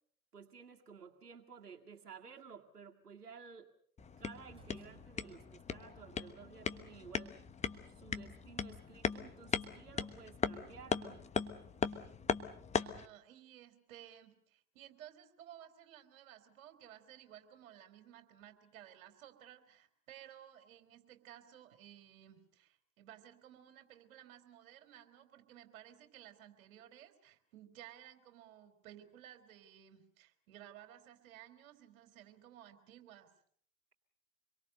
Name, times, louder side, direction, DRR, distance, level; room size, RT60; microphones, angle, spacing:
voice 1, 0.3-3.7 4.2-7.3 7.9-11.3, right 6 dB, 90° right, 3 dB, 2.2 m, -54 dB
sound 1, 4.0-13.1, left 6 dB, 15° left, 1.2 m, -39 dB
sound 2, 4.5-5.8, right 2 dB, 10° right, 5.6 m, -62 dB
voice 2, 12.8-33.3, right 11 dB, 60° right, 8 dB, 3.8 m, -56 dB
26.5 x 23.0 x 6.6 m, 0.63 s
hypercardioid pair, 100°, 45 cm